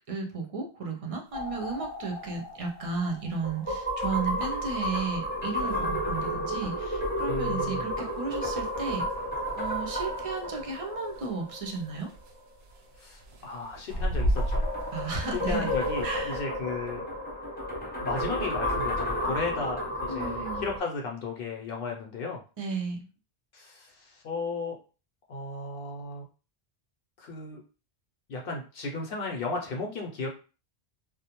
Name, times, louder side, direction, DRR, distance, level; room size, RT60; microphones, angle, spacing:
voice 1, 0.1-9.1 9.6-12.1 14.9-15.7 16.0-16.4 20.1-20.6 22.6-23.1, right 4 dB, 45° right, 2 dB, 0.5 m, -34 dB
sound 1, 1.3-11.9 13.9-20.8, equal, 10° left, 0.7 m, -32 dB
sound 2, 1.4-1.5 1.7-1.8 2.2-2.3 2.8-3.1 3.6-3.7 4.2-4.3 4.6-4.7 5.1-5.2 5.4-16.4, equal, 75° right, 0.8 m, -35 dB
voice 2, 7.3-7.9 13.0-14.6 15.3-17.0 18.0-22.4 23.5-24.8 25.3-26.2 27.2-27.6 28.3-30.3, left 3 dB, 65° left, 0 dB, 0.7 m, -35 dB
2.3 x 2.1 x 2.9 m, 0.34 s
omnidirectional pair, 1.1 m